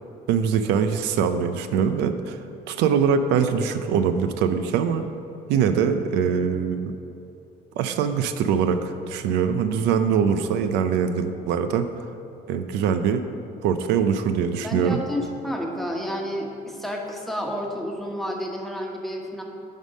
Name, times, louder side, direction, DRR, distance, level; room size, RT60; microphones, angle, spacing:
voice 1, 0.3-2.4 2.7-5.0 5.5-6.9 7.8-11.9 12.5-13.2 13.6-15.0, right 7 dB, 90° right, 8 dB, 0.5 m, -23 dB
voice 2, 14.6-19.4, equal, ahead, 0 dB, 1.1 m, -30 dB
10.5 x 3.6 x 6.3 m, 2.8 s
cardioid pair, 110°, 17 cm